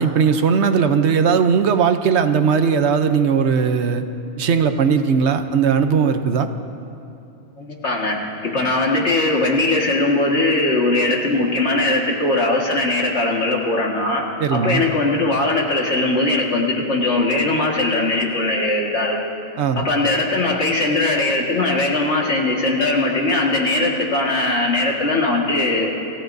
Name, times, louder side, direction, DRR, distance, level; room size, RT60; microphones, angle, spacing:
voice 1, 0.0-4.0 4.4-6.5 14.4-14.8 19.6-19.8, right 6 dB, 75° right, 8 dB, 1.0 m, -18 dB
voice 2, 7.6-8.2 8.4-19.2 19.8-25.9, left 2 dB, 70° left, -1 dB, 2.1 m, -20 dB
27.5 x 15.0 x 2.7 m, 2.8 s
omnidirectional pair, 1.2 m